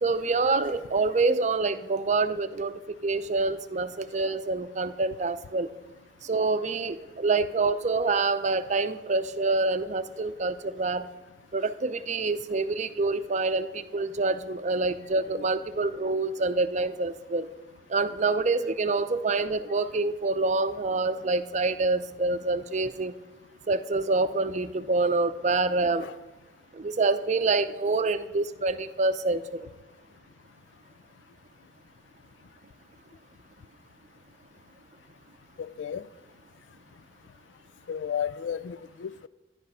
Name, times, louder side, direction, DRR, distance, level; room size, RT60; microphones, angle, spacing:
voice 1, 0.0-2.7 3.0-5.7 6.2-11.1 11.5-17.5 17.9-23.1 23.7-26.1 26.7-29.6, right 3 dB, 40° right, 0.6 m, -26 dB
voice 2, 37.9-39.3, left 8 dB, 85° left, 0.3 m, -33 dB
12.0 x 10.5 x 5.5 m
head